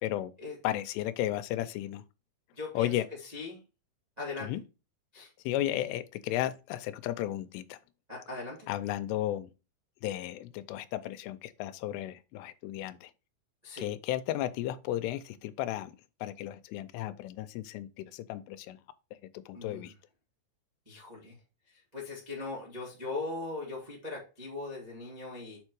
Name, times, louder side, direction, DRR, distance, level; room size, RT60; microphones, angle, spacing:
voice 1, 0.0-0.3 0.6-2.0 2.7-3.1 4.4-4.6 5.5-7.8 8.7-9.5 10.0-13.1 13.8-15.9 16.2-18.8 19.5-19.9, left 13 dB, 85° left, 2.7 m, -34 dB
voice 2, 2.5-2.9 3.2-3.6 4.2-4.5 5.1-5.3 8.1-8.7 13.6-13.9 19.5-19.9 20.8-21.3 21.7-25.6, left 3 dB, 15° right, 1.3 m, -40 dB
7.1 x 4.4 x 4.6 m
omnidirectional pair, 4.7 m